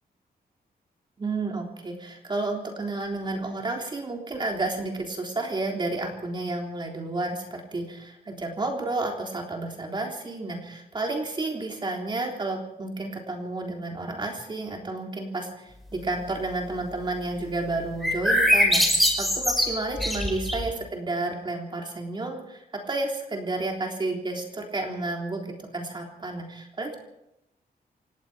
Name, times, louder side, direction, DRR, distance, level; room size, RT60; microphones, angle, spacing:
voice 1, 1.2-27.0, right 2 dB, 30° right, 1 dB, 3.6 m, -31 dB
sound 1, 18.0-20.7, equal, ahead, 5.0 m, -22 dB
29.0 x 17.5 x 5.1 m, 0.85 s
wide cardioid pair, 160°, 16 cm